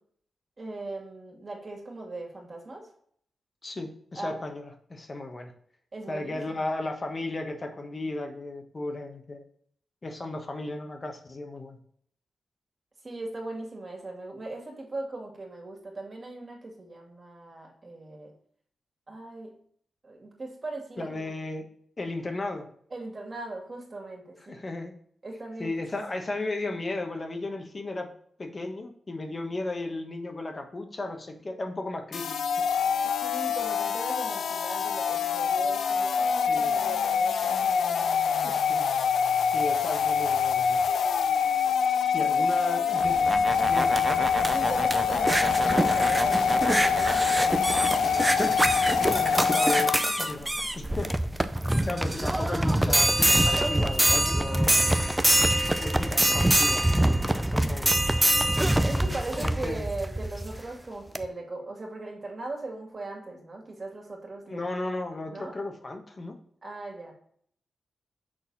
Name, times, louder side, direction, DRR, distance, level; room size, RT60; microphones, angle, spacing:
voice 1, 0.6-2.9 4.2-4.4 5.9-6.7 13.0-18.3 19.1-19.5 20.0-21.3 22.9-24.6 25.2-25.7 33.2-38.6 42.4-42.5 44.5-47.9 58.8-64.6 65.3-65.6 66.6-67.1, right 2 dB, 40° right, 0 dB, 2.3 m, -39 dB
voice 2, 3.6-5.5 6.1-9.4 10.0-11.8 21.0-21.7 22.0-22.7 24.5-25.0 25.6-28.1 28.4-32.6 36.5-36.8 38.4-38.9 39.5-40.8 42.1-43.2 43.7-43.9 49.0-51.2 51.7-54.9 55.8-56.8 57.3-58.1 59.3-59.9 64.5-66.4, left 2 dB, 35° left, 5 dB, 1.1 m, -35 dB
sound 1, 32.1-50.3, left 6 dB, 85° left, 0.4 m, -25 dB
sound 2, 42.9-60.6 61.2-61.3, right 1 dB, 10° right, 0.5 m, -25 dB
sound 3, 43.0-49.5, right 4 dB, 55° right, 0.6 m, -40 dB
6.2 x 4.1 x 4.0 m, 0.62 s
cardioid pair, 75°, 0 cm